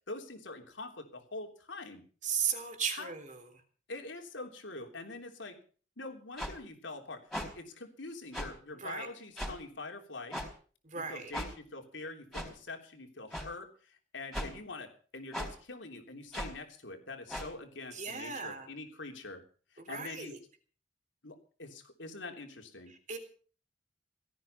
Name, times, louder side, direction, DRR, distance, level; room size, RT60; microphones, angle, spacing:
voice 1, 0.1-2.0 2.9-3.1 3.9-5.6 6.0-7.3 7.5-10.4 11.1-19.4 19.7-20.3 21.2-22.9, left 3 dB, 85° left, 4 dB, 3.5 m, -44 dB
voice 2, 2.2-3.5 8.8-9.1 10.8-11.3 17.9-18.7 19.8-20.4 22.9-23.2, right 6 dB, 45° right, 6 dB, 3.5 m, -36 dB
sound 1, 6.4-6.5 7.3-7.5 8.3-8.5 9.4-9.6 10.3-10.5 11.3-11.5 12.3-12.5 13.3-13.5 14.3-14.5 15.3-15.5 16.3-16.5 17.3-17.5, equal, ahead, 4.5 m, -37 dB
17.5 x 13.5 x 5.8 m, 0.42 s
head